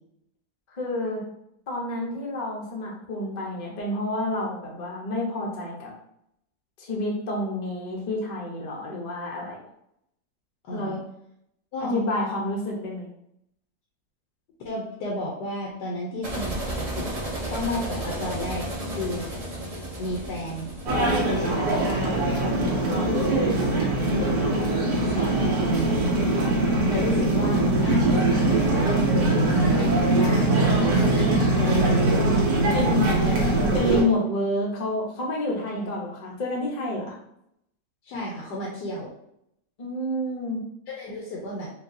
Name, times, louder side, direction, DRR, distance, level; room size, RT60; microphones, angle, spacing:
voice 1, 0.7-1.2 1.7-5.9 6.8-9.6 10.7-11.0 11.8-13.1 32.7-33.1 33.7-37.2 39.8-40.6, left 1 dB, 40° left, -2 dB, 0.6 m, -29 dB
voice 2, 10.6-11.0 11.7-12.1 14.6-17.1 17.5-18.7 18.9-19.3 20.0-20.7 21.2-24.7 25.0-26.0 26.9-30.6 30.9-32.2 32.6-33.6 35.7-35.9 38.0-39.1 40.9-41.7, left 1 dB, 80° left, -3 dB, 1.3 m, -32 dB
sound 1, 16.2-21.5, right 1 dB, 60° right, 0.4 m, -33 dB
sound 2, 20.9-34.0, right 2 dB, 80° right, 1.5 m, -22 dB
4.4 x 2.3 x 2.6 m, 0.76 s
omnidirectional pair, 1.8 m